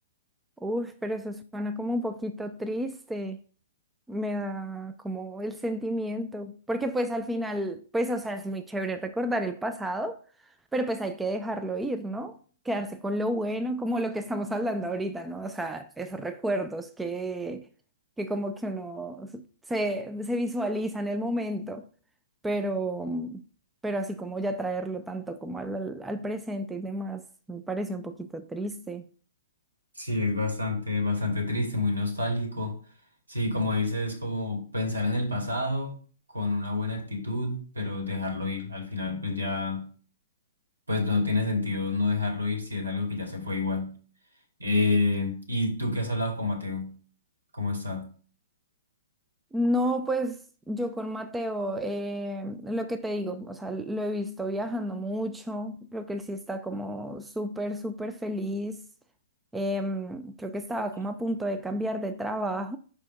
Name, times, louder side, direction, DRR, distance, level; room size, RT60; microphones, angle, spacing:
voice 1, 0.6-3.4 4.1-10.2 10.7-12.4 12.6-17.7 18.2-21.8 22.4-23.4 23.8-27.2 27.5-29.0 49.5-58.8 59.5-62.8, right 1 dB, 5° right, 0.4 m, -31 dB
voice 2, 30.0-32.7 33.3-35.9 36.3-39.9 40.9-43.9 44.6-46.9 47.5-48.1, left 2 dB, 75° right, 2.4 m, -28 dB
5.1 x 4.4 x 6.0 m
figure-of-eight pair, 115°, 0 cm